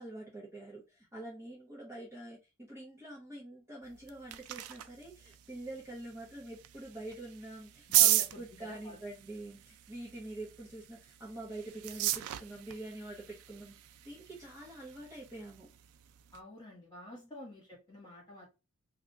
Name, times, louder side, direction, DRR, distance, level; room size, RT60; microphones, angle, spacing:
voice 1, 0.0-13.7 14.0-15.7 17.1-17.3, right 2 dB, 10° right, 0.8 m, -46 dB
sound 1, 3.8-16.4, right 13 dB, 85° right, 0.3 m, -36 dB
voice 2, 7.9-9.0 16.3-18.5, left 1 dB, 20° left, 1.7 m, -49 dB
2.8 x 2.5 x 3.4 m
head